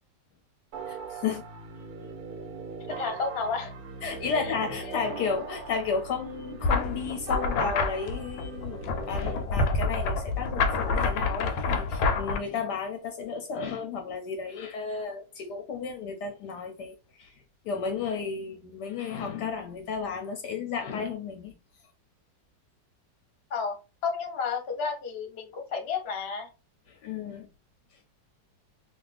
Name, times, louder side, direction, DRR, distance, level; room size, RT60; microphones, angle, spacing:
sound 1, 0.7-9.5, right 5 dB, 70° right, 0.9 m, -40 dB
voice 1, 0.9-1.5 4.0-21.5 26.9-27.5 27.9-28.0, left 5 dB, 75° left, 1.1 m, -33 dB
voice 2, 2.9-3.7 4.4-4.5 4.9-5.1 23.5-23.8 24.0-26.5, left 5 dB, 45° left, 0.9 m, -31 dB
sound 2, 6.6-12.4, left 3 dB, 90° left, 1.3 m, -28 dB
2.8 x 2.5 x 3.2 m
omnidirectional pair, 2.0 m